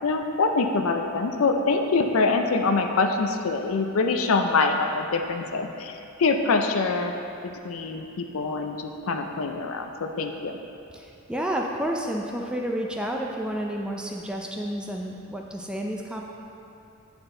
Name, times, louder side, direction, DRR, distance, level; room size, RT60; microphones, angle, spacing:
voice 1, 0.0-7.1 7.4-10.6, left 3 dB, 70° left, 5 dB, 0.5 m, -25 dB
voice 2, 10.9-16.2, right 1 dB, 5° right, 0 dB, 0.4 m, -30 dB
8.9 x 4.4 x 3.8 m, 2.7 s
head